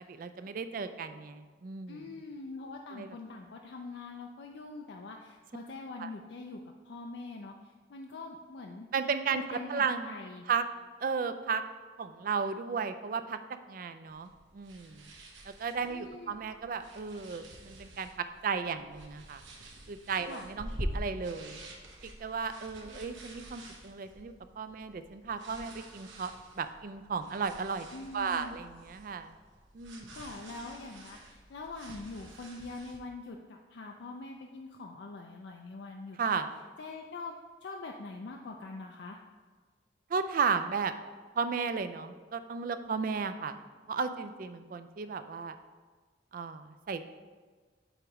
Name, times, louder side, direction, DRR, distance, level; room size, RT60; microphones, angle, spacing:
voice 1, 0.1-2.0 2.9-3.1 6.0-6.1 8.9-10.1 10.5-10.6 11.0-11.6 12.0-13.4 13.7-15.1 15.5-19.4 19.9-21.6 22.2-27.9 28.1-29.3 29.7-30.0 36.2-36.5 40.1-40.9 41.4-43.6 43.9-45.5 46.3-47.1, right 5 dB, 45° right, 10 dB, 0.3 m, -34 dB
voice 2, 1.9-8.9 9.3-10.5 15.9-16.4 20.2-20.5 22.9-23.0 27.9-28.6 30.1-36.2 36.8-37.3 37.6-39.2, left 3 dB, 65° left, 2 dB, 0.4 m, -44 dB
sound 1, 14.1-33.0, right 1 dB, 85° right, 1.0 m, -46 dB
7.9 x 3.0 x 4.7 m, 1.4 s
head